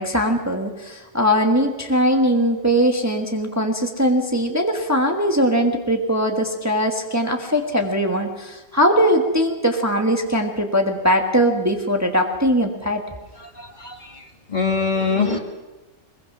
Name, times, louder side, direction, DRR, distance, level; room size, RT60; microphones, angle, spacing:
voice 1, 0.0-13.0, equal, 15° right, 3 dB, 1.4 m, -20 dB
voice 2, 13.6-14.2 14.5-15.4, left 4 dB, 35° left, 4 dB, 1.9 m, -23 dB
22.0 x 21.5 x 6.2 m, 1.1 s
omnidirectional pair, 1.3 m